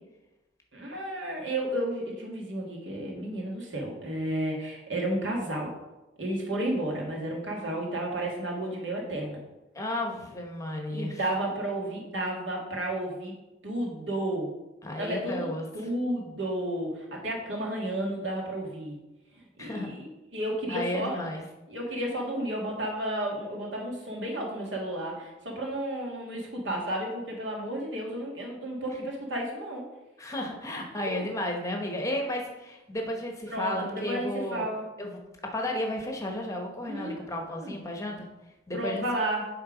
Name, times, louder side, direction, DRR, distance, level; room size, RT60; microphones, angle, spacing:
voice 1, 0.7-5.7 6.2-9.4 10.9-13.3 13.6-14.5 15.0-15.5 15.7-19.0 19.6-21.2 21.7-29.8 31.1-31.2 33.5-34.9 36.8-37.7 38.7-39.5, right 1 dB, 90° right, -1 dB, 1.9 m, -32 dB
voice 2, 9.7-11.2 14.8-15.7 19.6-19.9 20.7-21.4 30.2-34.7 35.0-35.2 35.5-38.3 38.7-39.0, left 1 dB, 15° left, 1 dB, 0.9 m, -33 dB
8.6 x 3.5 x 4.9 m, 1.0 s
head